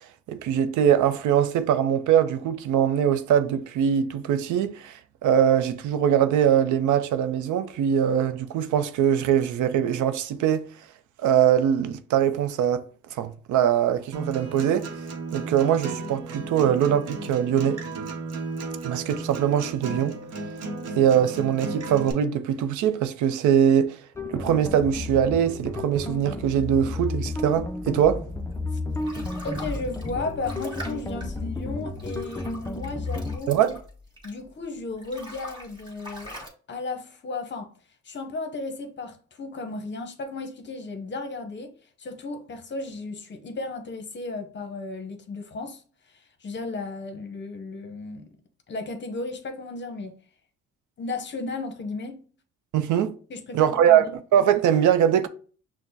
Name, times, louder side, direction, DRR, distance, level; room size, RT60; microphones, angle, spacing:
voice 1, 0.3-10.6 11.2-12.8 13.1-14.9 15.3-17.8 18.8-20.2 20.9-24.0 24.3-28.2 33.5-33.7 52.7-53.1 53.5-54.0 54.3-55.3, right 9 dB, 75° right, 0.5 m, -22 dB
Acoustic guitar, 14.1-22.1, right 3 dB, 55° right, 0.9 m, -34 dB
sound 1, 24.2-33.4, left 2 dB, 10° left, 0.4 m, -32 dB
sound 2, 28.5-34.6 34.9-36.5, equal, 15° right, 1.5 m, -43 dB
voice 2, 29.4-33.6 34.2-37.7 38.0-41.7 42.0-45.8 46.1-48.3 48.7-50.1 51.0-52.2 53.3-54.1, left 3 dB, 40° left, 0.8 m, -34 dB
5.9 x 2.1 x 2.7 m
cardioid pair, 90°, 30 cm